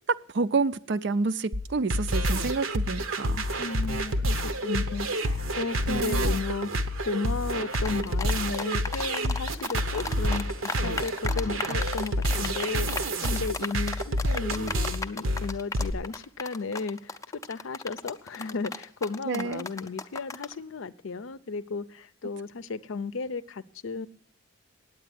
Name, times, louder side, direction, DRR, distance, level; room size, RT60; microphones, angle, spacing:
voice 1, 0.1-3.4 5.9-6.3 19.3-19.7, right 4 dB, 55° right, 0.5 m, -28 dB
sound 1, 1.5-15.9, equal, 75° right, 0.9 m, -28 dB
voice 2, 3.6-24.1, left 4 dB, 70° left, 0.6 m, -34 dB
sound 2, 7.7-20.5, left 3 dB, 15° left, 0.5 m, -35 dB
9.0 x 8.6 x 9.4 m
head